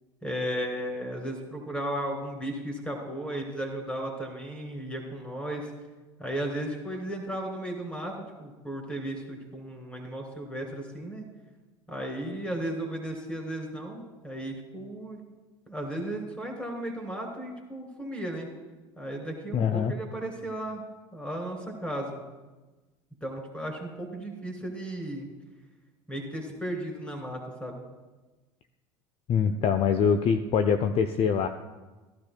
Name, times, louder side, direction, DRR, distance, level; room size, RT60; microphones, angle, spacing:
voice 1, 0.2-5.7 6.2-11.3 11.9-15.2 15.7-18.5 19.0-20.8 21.1-22.2 23.2-25.3 26.1-27.8, right 1 dB, 10° left, 1 dB, 3.0 m, -35 dB
voice 2, 19.5-19.9 29.3-31.5, left 6 dB, 45° left, 9 dB, 0.5 m, -24 dB
15.0 x 12.0 x 2.2 m, 1.2 s
hypercardioid pair, 85°, 13 cm